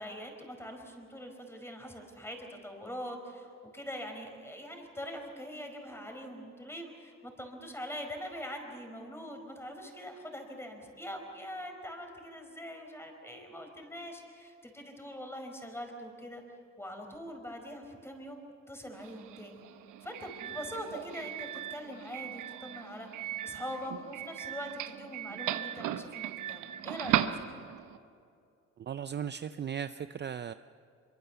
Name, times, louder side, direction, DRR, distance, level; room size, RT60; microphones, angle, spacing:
voice 1, 0.0-16.4 16.8-18.4 18.7-19.6 20.0-27.4, equal, 10° left, 4 dB, 5.0 m, -43 dB
Doorbell, 18.9-28.0, right 11 dB, 85° right, 1.0 m, -37 dB
voice 2, 28.8-30.5, right 8 dB, 35° right, 11 dB, 0.5 m, -37 dB
25.0 x 23.5 x 7.0 m, 2.4 s
cardioid pair, 90°, 30 cm